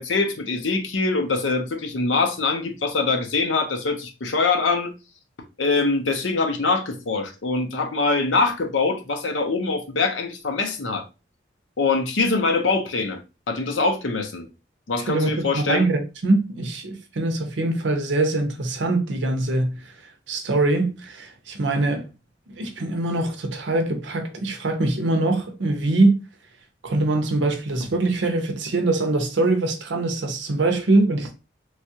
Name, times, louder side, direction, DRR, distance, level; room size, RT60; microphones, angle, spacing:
voice 1, 0.0-4.9 5.6-11.0 11.8-13.2 13.5-14.5 14.9-15.9, left 3 dB, 90° left, 0.7 m, -23 dB
voice 2, 15.1-19.8 20.3-22.0 22.6-26.2 26.8-31.3, right 2 dB, 75° right, 0.6 m, -23 dB
3.2 x 2.3 x 2.7 m
head